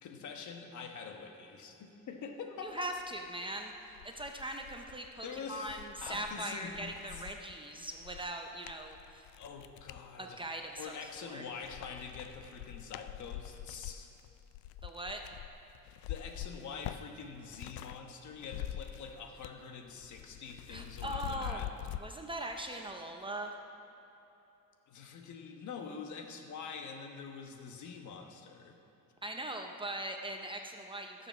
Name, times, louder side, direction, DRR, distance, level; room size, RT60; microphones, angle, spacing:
voice 1, 0.0-2.9 5.2-7.3 9.4-10.5 10.8-14.1 16.1-21.7 24.9-28.8, left 5 dB, 60° left, 4 dB, 1.2 m, -45 dB
voice 2, 2.6-9.3 10.2-10.9 11.2-11.4 14.8-15.2 20.7-21.7 22.0-23.5 29.2-31.3, right 1 dB, 15° right, 3 dB, 0.5 m, -40 dB
sound 1, 3.4-3.5 3.9-10.1 10.6-11.2 11.5-18.0 18.3-19.7 19.9-22.0, left 13 dB, 90° left, 0.5 m, -45 dB
14.0 x 6.8 x 6.2 m, 2.9 s
cardioid pair, 150°, 34 cm